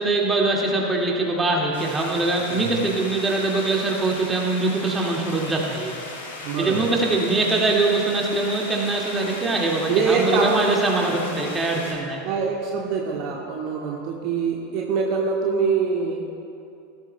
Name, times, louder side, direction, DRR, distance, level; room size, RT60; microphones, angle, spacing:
voice 1, 0.0-5.9 6.6-12.2, right 2 dB, 15° right, -1 dB, 2.0 m, -23 dB
sound 1, 1.7-11.9, left 2 dB, 65° left, 2.1 m, -37 dB
voice 2, 6.4-6.9 9.2-9.5 9.9-10.6 11.0-11.1 12.2-16.2, right 5 dB, 50° right, -1 dB, 1.2 m, -24 dB
17.0 x 13.0 x 2.2 m, 2.6 s
figure-of-eight pair, 80°, 0 cm